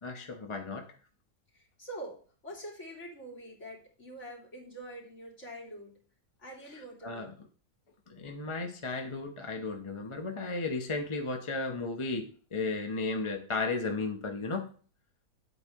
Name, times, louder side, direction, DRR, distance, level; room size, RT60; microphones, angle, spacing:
voice 1, 0.0-0.9 7.0-7.3 8.1-14.7, left 3 dB, 25° left, 3 dB, 0.7 m, -34 dB
voice 2, 1.5-2.2 2.4-5.9 6.4-7.3, right 1 dB, 45° left, -2 dB, 3.3 m, -45 dB
9.1 x 8.3 x 3.6 m, 0.41 s
omnidirectional pair, 1.7 m